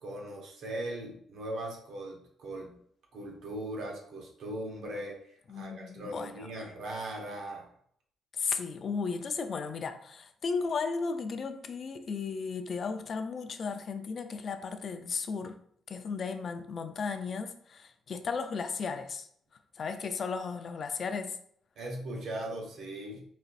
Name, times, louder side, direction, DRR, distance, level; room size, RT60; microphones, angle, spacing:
voice 1, 0.0-2.7 3.1-5.2 5.5-7.6 21.8-23.2, right 1 dB, 75° right, 0 dB, 1.0 m, -39 dB
voice 2, 5.5-6.5 8.3-15.6 15.9-19.3 19.8-21.4, left 5 dB, 50° left, 8 dB, 0.4 m, -35 dB
4.1 x 2.5 x 2.4 m, 0.64 s
cardioid pair, 90°, 0 cm